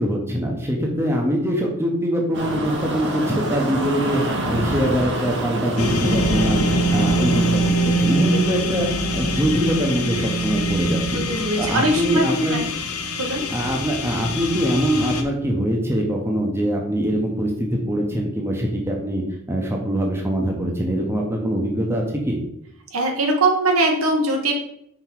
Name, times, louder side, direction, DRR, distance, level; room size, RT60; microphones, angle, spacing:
voice 1, 0.0-6.6 6.9-8.9 9.1-11.2 11.6-12.6 13.5-22.4, equal, 10° right, -1 dB, 1.0 m, -23 dB
sound 1, 2.3-7.6, right 1 dB, 55° right, 1.1 m, -26 dB
sound 2, 5.8-15.2, right 1 dB, 75° left, 0.9 m, -23 dB
voice 2, 11.1-12.7 13.2-13.4 22.9-24.5, right 2 dB, 75° right, 2 dB, 1.3 m, -21 dB
5.9 x 4.6 x 4.7 m, 0.74 s
head